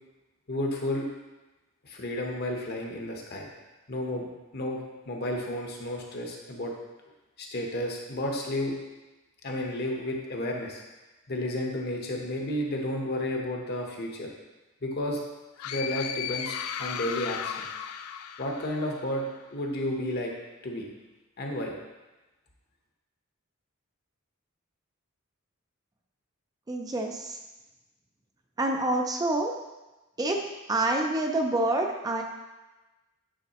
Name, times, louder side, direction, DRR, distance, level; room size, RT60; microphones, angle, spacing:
voice 1, 0.5-1.1 1.8-3.5 3.9-4.3 4.5-4.8 5.1-6.7 7.4-8.7 9.4-10.8 11.3-14.3 14.8-15.2 15.6-17.7 18.4-19.2 19.5-20.3 20.6-20.9 21.4-21.7, left 1 dB, 50° left, 0 dB, 0.9 m, -32 dB
sound 1, 15.6-19.3, left 9 dB, 85° left, 0.3 m, -35 dB
voice 2, 26.7-27.4 28.6-29.5 30.2-32.2, right 2 dB, 20° right, 2 dB, 0.4 m, -27 dB
8.9 x 3.8 x 2.9 m, 1.1 s
head